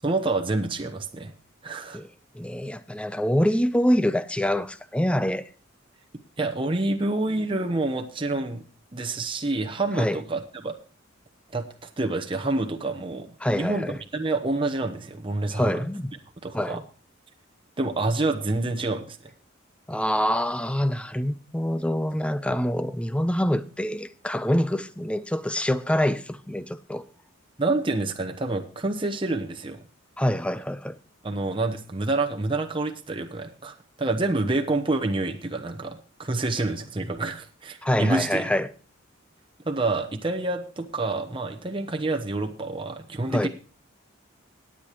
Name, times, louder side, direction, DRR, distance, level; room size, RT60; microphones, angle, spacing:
voice 1, 0.0-1.3 1.6-2.0 6.4-8.6 8.9-10.7 11.5-15.8 16.4-16.8 17.8-19.2 27.6-29.8 31.2-38.5 39.7-43.5, right 2 dB, 25° right, 0.9 m, -28 dB
voice 2, 2.3-5.5 10.0-10.2 13.4-14.0 15.5-16.1 16.5-16.8 19.9-27.0 30.2-31.0 37.8-38.7 43.3-43.5, equal, 5° left, 0.6 m, -25 dB
18.5 x 8.5 x 3.0 m
head